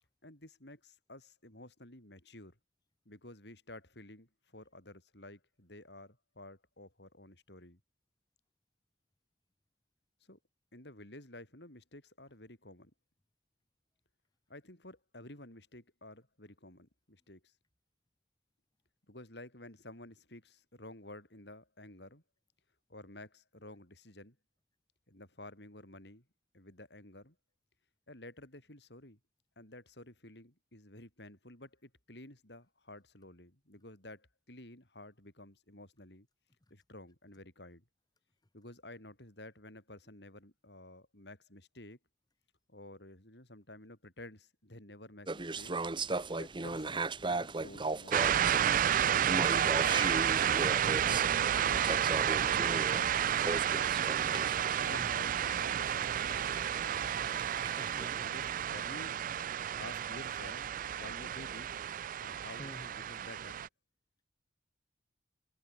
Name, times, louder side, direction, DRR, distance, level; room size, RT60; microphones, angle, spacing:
voice 1, 0.2-2.6 3.0-7.8 10.3-10.4 10.7-12.9 14.5-17.5 19.1-22.2 22.9-24.4 25.1-26.2 26.5-27.3 28.1-29.2 29.6-36.3 36.7-37.8 38.5-42.0 42.7-45.7 46.3-49.6 50.9-52.1 52.4-53.9 54.6-57.0 58.2-59.2 59.8-61.8 62.2-63.6, left 1 dB, 65° left, 6.6 m, -52 dB
sound 1, 45.3-58.1, right 3 dB, 25° right, 1.0 m, -38 dB
sound 2, 48.1-63.7, right 9 dB, 50° right, 0.4 m, -31 dB
voice 2, 50.3-50.9 54.8-55.1 57.7-58.3 62.6-62.8, left 1 dB, 20° left, 1.0 m, -49 dB
head